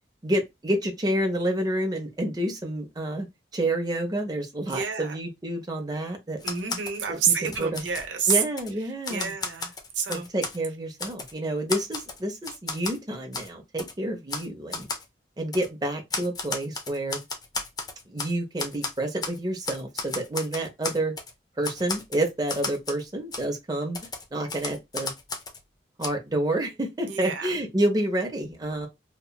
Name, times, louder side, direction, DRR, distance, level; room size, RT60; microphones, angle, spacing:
voice 1, 0.2-3.3 3.5-6.4 7.1-7.2 7.6-7.8 8.3-9.3 10.1-14.9 15.4-17.2 18.1-21.1 21.6-24.0 24.3-25.1 26.0-28.9, right 1 dB, 20° right, 0.6 m, -29 dB
voice 2, 4.6-5.2 6.4-8.4 8.9-10.3 27.1-27.6, right 7 dB, 90° right, 0.7 m, -28 dB
Typewriter, 6.4-7.0 7.4-8.7 9.0-10.6 11.0-11.3 11.7-13.0 13.3-13.5 13.8-13.9 14.3-14.5 14.7-15.0 15.5-15.7 16.1-18.3 18.6-19.4 19.6-21.3 21.6-23.0 23.3-23.5 23.9-25.6 26.0-26.1, left 4 dB, 20° left, 0.4 m, -34 dB
2.8 x 2.3 x 2.3 m
head